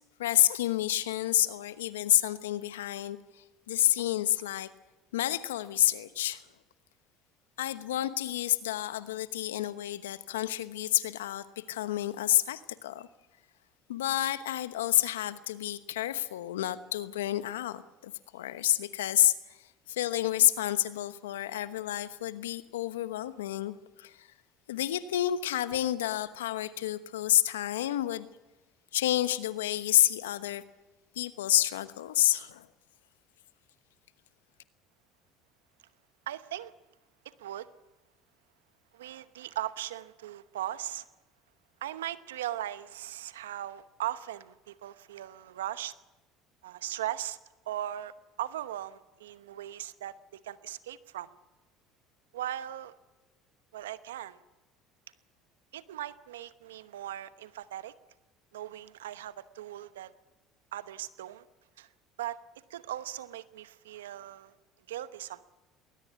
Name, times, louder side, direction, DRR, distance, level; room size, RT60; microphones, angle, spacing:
voice 1, 0.2-3.2 3.7-4.7 5.1-6.4 7.6-13.1 13.9-19.6 19.9-24.3 24.7-28.3 28.9-30.6 31.1-32.7, left 13 dB, 85° left, 13 dB, 1.1 m, -29 dB
voice 2, 36.3-36.7 37.2-37.7 38.9-41.1 41.8-46.0 46.6-47.4 47.7-51.3 52.3-52.9 53.7-54.4 55.7-57.9 58.5-60.1 60.7-61.4 61.8-61.9 62.2-62.4 62.7-64.5 64.9-65.5, right 12 dB, 85° right, 14 dB, 0.9 m, -38 dB
20.5 x 19.5 x 8.4 m, 1.1 s
hypercardioid pair, 75°, 0 cm